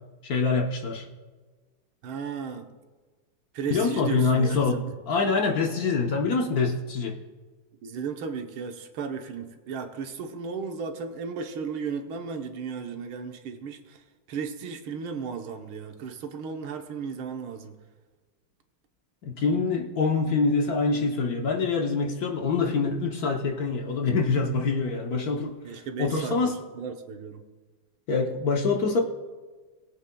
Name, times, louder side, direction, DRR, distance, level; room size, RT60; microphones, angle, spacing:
voice 1, 0.2-1.1 3.7-4.8 5.1-7.2 19.2-25.5 26.0-26.5 28.1-29.0, left 4 dB, 55° left, 2 dB, 1.2 m, -25 dB
voice 2, 2.0-2.7 3.5-4.8 7.8-14.0 14.3-17.7 25.6-27.4, right 6 dB, 85° right, 5 dB, 1.8 m, -35 dB
20.0 x 8.2 x 2.3 m, 1.3 s
omnidirectional pair, 2.2 m